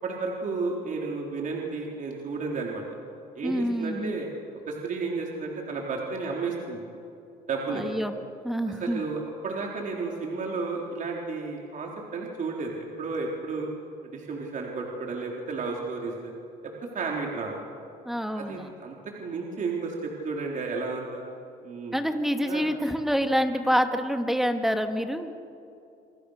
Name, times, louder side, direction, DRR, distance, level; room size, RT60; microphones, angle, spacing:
voice 1, 0.0-2.8 3.4-4.3 4.7-6.8 7.5-7.8 8.8-13.7 14.1-16.3 16.6-17.6 18.4-18.9 19.2-21.2 21.6-21.9 22.4-22.7, right 4 dB, 50° right, -1 dB, 4.0 m, -32 dB
voice 2, 3.4-4.1 7.7-8.1 8.4-9.0 18.0-18.7 21.9-25.3, equal, ahead, 6 dB, 2.0 m, -27 dB
27.0 x 27.0 x 6.6 m, 2.6 s
cardioid pair, 110°, 17 cm